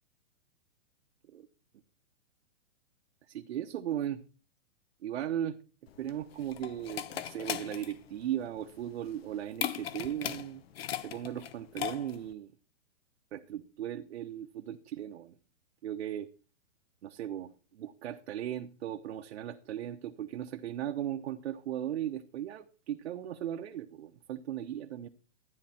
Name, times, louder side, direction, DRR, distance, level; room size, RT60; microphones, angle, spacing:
voice 1, 3.3-4.2 5.0-5.6 6.0-10.6 11.0-12.5 13.3-15.3 15.8-16.3 17.0-25.1, right 11 dB, 60° right, 4 dB, 1.1 m, -37 dB
sound 1, 5.9-12.3, left 10 dB, 50° left, 1.1 m, -39 dB
13.0 x 9.8 x 4.3 m, 0.35 s
hypercardioid pair, 160°, 38 cm